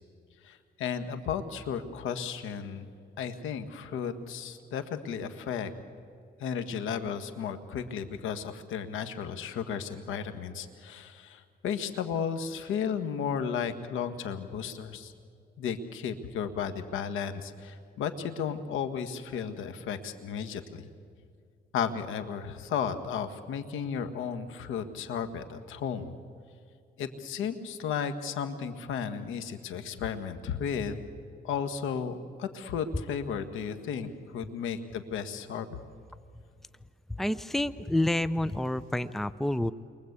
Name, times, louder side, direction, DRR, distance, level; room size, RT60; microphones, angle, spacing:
voice 1, 0.4-2.9 3.2-5.7 6.4-15.1 15.6-20.9 21.7-26.1 27.0-31.0 31.4-35.7, left 7 dB, 85° left, 9 dB, 1.7 m, -34 dB
voice 2, 37.2-39.7, left 1 dB, ahead, 14 dB, 0.7 m, -28 dB
29.0 x 23.0 x 8.3 m, 2.3 s
cardioid pair, 90°, 20 cm